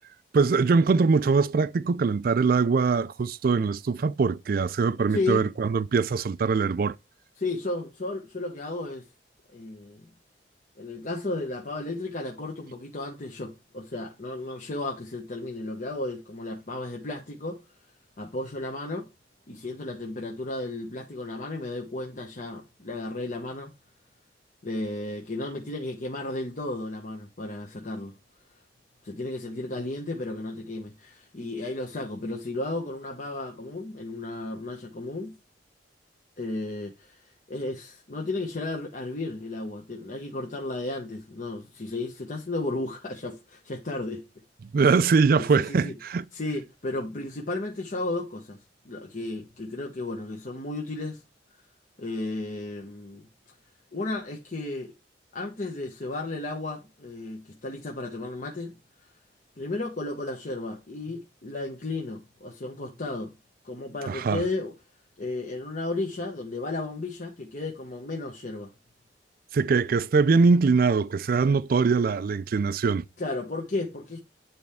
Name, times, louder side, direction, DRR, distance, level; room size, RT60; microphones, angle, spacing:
voice 1, 0.3-6.9 44.7-46.2 64.1-64.4 69.5-73.0, right 4 dB, 55° right, 0.4 m, -22 dB
voice 2, 5.1-5.5 7.4-9.1 9.5-10.1 10.8-17.6 18.2-19.1 19.5-23.7 24.6-28.1 29.0-35.4 36.4-44.2 45.3-45.9 46.3-51.2 52.0-53.3 53.9-54.9 55.3-58.7 59.6-63.3 63.6-64.7 65.2-68.7 73.2-74.2, left 2 dB, 45° left, 1.1 m, -34 dB
9.5 x 4.3 x 3.5 m
head